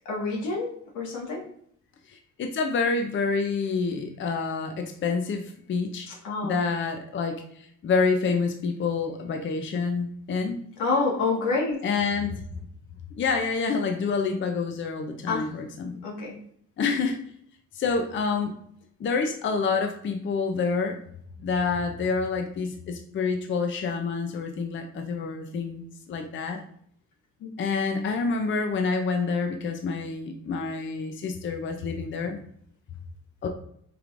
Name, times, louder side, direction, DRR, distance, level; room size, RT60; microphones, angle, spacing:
voice 1, 0.0-1.4 6.1-6.7 10.8-11.8 15.3-15.5 16.0-16.4 27.4-27.6, left 3 dB, 90° left, -2 dB, 1.4 m, -28 dB
voice 2, 2.1-6.1 6.4-10.6 11.8-12.6 13.2-16.0 16.8-17.2 17.7-18.6 19.0-21.0 21.4-26.6 27.6-32.4 33.4-33.5, left 4 dB, 40° left, 4 dB, 0.5 m, -28 dB
4.6 x 3.1 x 2.5 m, 0.67 s
cardioid pair, 90°, 30 cm